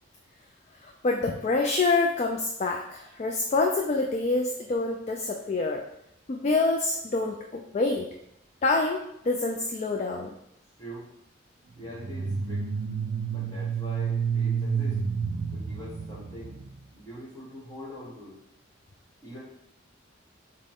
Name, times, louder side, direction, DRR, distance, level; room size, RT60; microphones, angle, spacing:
voice 1, 0.8-5.8 6.3-8.1 8.6-9.0 9.3-10.3, left 3 dB, 35° left, 1 dB, 0.3 m, -26 dB
voice 2, 10.8-11.1 11.8-12.7 13.3-15.0 15.5-16.6 16.9-18.4 19.2-19.4, left 1 dB, 20° left, -4 dB, 1.3 m, -43 dB
sound 1, 11.9-16.8, right 6 dB, 45° right, 0.3 m, -30 dB
6.0 x 2.2 x 3.6 m, 0.78 s
head